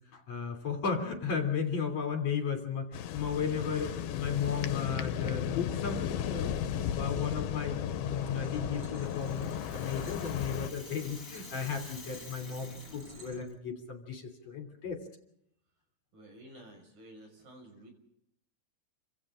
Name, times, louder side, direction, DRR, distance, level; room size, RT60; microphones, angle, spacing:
voice 1, 0.1-6.7 7.0-15.0, left 6 dB, 45° left, 4 dB, 4.1 m, -35 dB
sound 1, 2.9-10.7, left 9 dB, 80° left, 3.0 m, -35 dB
sound 2, 8.4-13.4, right 2 dB, 35° right, 5.9 m, -51 dB
Rattle (instrument), 8.8-13.5, left 4 dB, 25° left, 2.1 m, -50 dB
voice 2, 16.1-17.9, right 1 dB, 60° right, 4 dB, 7.8 m, -52 dB
28.5 x 26.0 x 3.8 m, 0.73 s
omnidirectional pair, 4.4 m